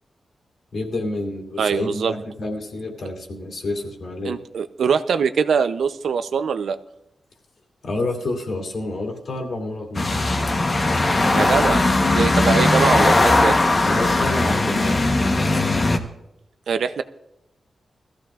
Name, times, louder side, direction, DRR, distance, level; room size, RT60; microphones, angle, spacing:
voice 1, 0.7-4.4 7.8-10.2 12.4-12.8 13.8-14.9, left 2 dB, 60° left, 0 dB, 2.7 m, -29 dB
voice 2, 1.6-2.1 4.2-6.8 11.3-13.6 16.7-17.0, right 6 dB, 90° right, 10 dB, 0.6 m, -22 dB
sound 1, 9.9-16.0, left 2 dB, 35° left, 1.1 m, -18 dB
21.0 x 14.5 x 2.5 m, 0.87 s
wide cardioid pair, 140°, 0 cm